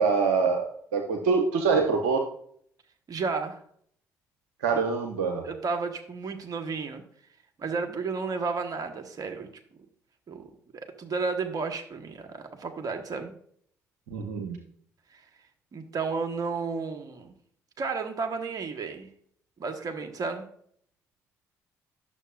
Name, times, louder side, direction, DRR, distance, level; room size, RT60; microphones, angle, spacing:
voice 1, 0.0-2.2 4.6-5.5 14.1-14.6, right 5 dB, 80° right, 4 dB, 0.8 m, -25 dB
voice 2, 3.1-3.6 4.7-4.8 5.4-7.0 7.6-9.5 10.3-13.3 15.1-15.2 15.7-17.3 17.8-19.1 19.6-20.4, right 4 dB, 50° right, 5 dB, 1.4 m, -32 dB
11.0 x 6.8 x 2.5 m, 0.64 s
hypercardioid pair, 45°, 8 cm